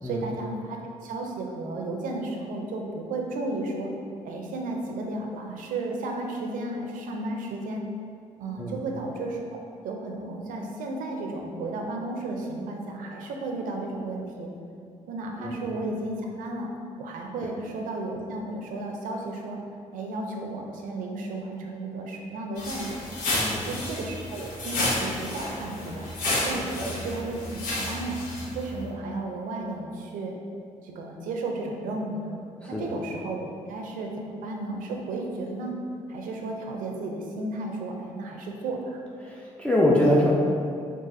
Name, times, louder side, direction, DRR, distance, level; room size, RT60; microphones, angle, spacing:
voice 1, 0.0-3.9 4.2-7.8 8.4-9.4 9.8-14.5 15.1-16.7 17.0-19.6 19.9-23.0 23.5-26.1 26.4-28.2 28.5-30.4 30.8-32.4 32.7-35.8 36.1-39.0, right 2 dB, 80° right, 1 dB, 0.5 m, -33 dB
voice 2, 15.4-15.7 17.4-17.5 23.3-23.7 26.5-26.9 32.6-32.8 39.2-40.3, left 1 dB, 10° left, -5 dB, 0.5 m, -25 dB
sound 1, 22.6-28.7, left 1 dB, 80° left, 0.8 m, -31 dB
3.9 x 2.4 x 2.6 m, 2.4 s
supercardioid pair, 65°, 14 cm